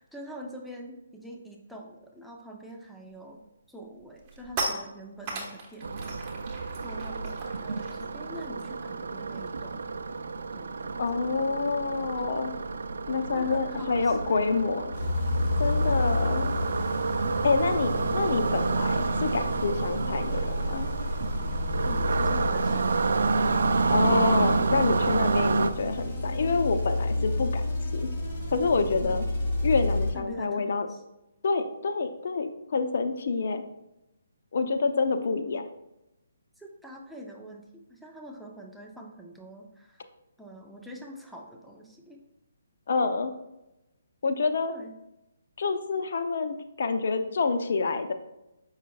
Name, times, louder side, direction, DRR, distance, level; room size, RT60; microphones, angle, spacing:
voice 1, 0.0-3.4 3.7-6.4 6.8-9.9 10.5-11.2 13.3-14.7 21.8-22.9 29.0-29.3 30.1-31.0 36.6-37.6 37.9-40.0 40.4-42.2 44.7-44.9, equal, ahead, -1 dB, 0.6 m, -45 dB
sound 1, 3.2-3.4 3.8-9.7 10.0-10.3 10.5-15.5, right 2 dB, 25° right, 1.2 m, -40 dB
sound 2, 5.8-25.7, right 4 dB, 75° right, 0.4 m, -29 dB
voice 2, 11.0-12.5 13.1-14.9 15.6-16.5 17.4-20.9 23.9-27.6 27.9-28.1 28.5-29.3 29.6-30.9 31.4-33.6 34.5-35.7 42.9-43.3 44.2-44.7 45.6-48.1, left 4 dB, 60° left, 7 dB, 0.6 m, -27 dB
sound 3, 14.9-30.1, left 2 dB, 35° left, 2.2 m, -31 dB
7.3 x 5.5 x 2.3 m, 0.92 s
hypercardioid pair, 155°, 0 cm